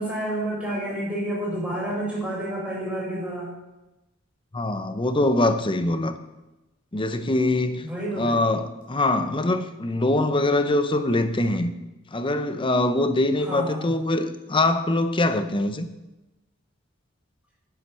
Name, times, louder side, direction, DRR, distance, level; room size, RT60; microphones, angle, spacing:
voice 1, 0.0-3.6 7.8-8.4 13.4-13.9, right 1 dB, 5° right, -5 dB, 4.4 m, -29 dB
voice 2, 4.5-6.1 6.9-7.8 8.1-11.7 12.1-15.9, left 2 dB, 25° left, 9 dB, 0.7 m, -23 dB
9.8 x 7.3 x 6.3 m, 1.0 s
head